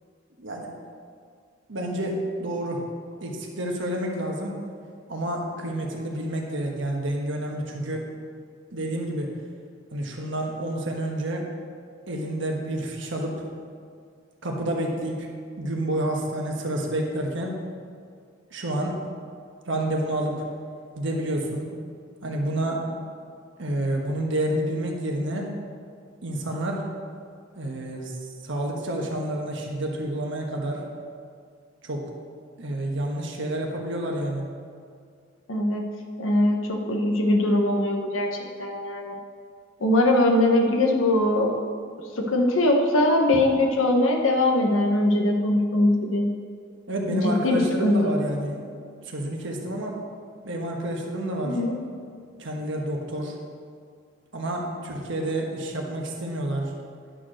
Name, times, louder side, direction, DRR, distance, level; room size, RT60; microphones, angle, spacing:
voice 1, 0.4-0.7 1.7-2.8 3.2-4.6 5.1-8.0 8.7-9.3 9.9-11.4 12.1-13.4 14.4-15.3 15.6-17.6 18.5-19.0 19.7-20.4 20.9-21.7 22.2-22.9 23.6-25.5 26.2-26.8 27.6-28.1 28.4-30.8 31.8-32.1 32.6-34.4 46.9-48.6 49.1-50.0 50.4-51.6 52.4-53.4 54.3-56.7, right 1 dB, 65° right, 0 dB, 1.4 m, -29 dB
voice 2, 35.5-35.8 36.2-39.2 39.8-41.5 42.2-46.2 47.1-48.1 51.4-51.7, left 1 dB, 80° left, 2 dB, 1.1 m, -21 dB
11.0 x 4.6 x 6.4 m, 2.2 s
head